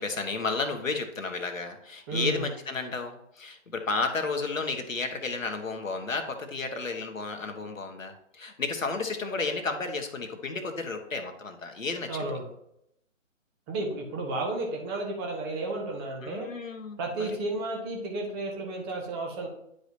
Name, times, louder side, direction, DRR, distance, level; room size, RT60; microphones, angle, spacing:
voice 1, 0.0-12.4 16.2-17.4, left 3 dB, 85° left, 5 dB, 1.4 m, -32 dB
voice 2, 2.1-2.4 12.1-12.5 13.7-16.5 17.0-19.5, right 2 dB, 20° right, 1 dB, 1.2 m, -32 dB
10.5 x 5.0 x 2.8 m, 0.77 s
figure-of-eight pair, 145°, 39 cm